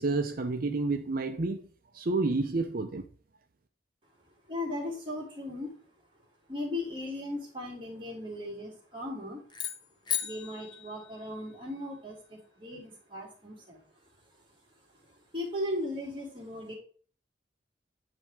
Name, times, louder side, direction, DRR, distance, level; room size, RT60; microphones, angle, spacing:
voice 1, 0.0-1.6 1.9-3.1, right 3 dB, 55° right, 0.6 m, -29 dB
voice 2, 4.5-5.7 6.5-9.4 10.2-13.8 15.1-16.8, left 1 dB, 30° right, 2.7 m, -37 dB
sound 1, 9.5-11.8, left 9 dB, 25° left, 0.8 m, -37 dB
10.0 x 3.4 x 4.8 m
head